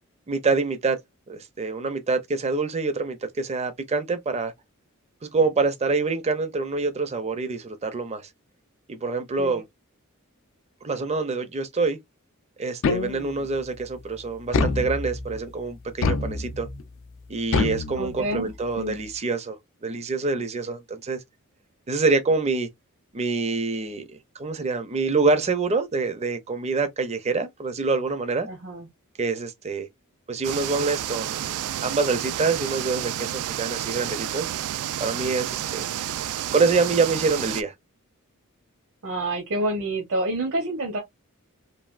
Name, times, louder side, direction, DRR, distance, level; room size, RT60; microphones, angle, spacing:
voice 1, 0.3-1.0 1.3-4.5 5.2-8.3 8.9-9.6 10.8-12.0 12.6-16.7 17.3-19.6 19.8-21.2 21.9-22.7 23.1-28.5 29.2-29.9 30.3-34.5 35.0-35.9 36.5-37.7, right 3 dB, 30° right, 0.5 m, -26 dB
sound 1, 12.8-13.5 14.5-15.4 16.0-16.8 17.5-18.5, left 4 dB, 60° left, 0.4 m, -26 dB
voice 2, 18.0-18.5 18.8-19.0 28.5-28.9 39.0-41.0, right 1 dB, 65° right, 0.8 m, -28 dB
sound 2, 30.4-37.6, right 11 dB, 90° right, 0.3 m, -30 dB
3.3 x 2.3 x 2.4 m
head